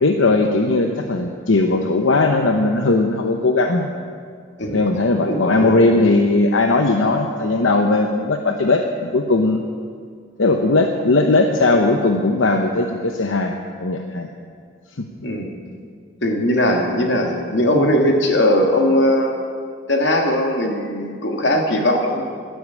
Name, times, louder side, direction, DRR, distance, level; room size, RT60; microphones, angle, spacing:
voice 1, 0.0-3.9 4.7-9.6 10.4-14.3 15.0-15.1, left 2 dB, 85° left, 4 dB, 0.8 m, -18 dB
voice 2, 5.3-5.7 15.2-15.5 16.2-19.4 19.9-22.2, left 1 dB, 65° left, 2 dB, 1.9 m, -19 dB
11.5 x 10.0 x 8.4 m, 2.1 s
head